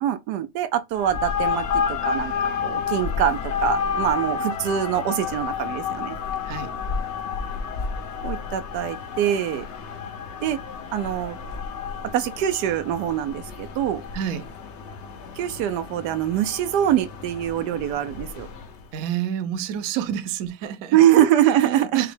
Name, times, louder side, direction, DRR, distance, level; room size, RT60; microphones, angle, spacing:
voice 1, 0.0-2.3 2.6-6.2 8.2-9.6 10.4-10.6 10.9-11.4 12.1-14.0 15.4-18.5 20.9-22.0, right 11 dB, 85° right, 1.2 m, -23 dB
sound 1, 0.9-18.8, left 6 dB, 60° left, 0.8 m, -30 dB
voice 2, 14.1-14.5 18.9-21.0 21.5-22.1, right 10 dB, 70° right, 0.9 m, -28 dB
5.9 x 2.2 x 3.2 m
omnidirectional pair, 1.7 m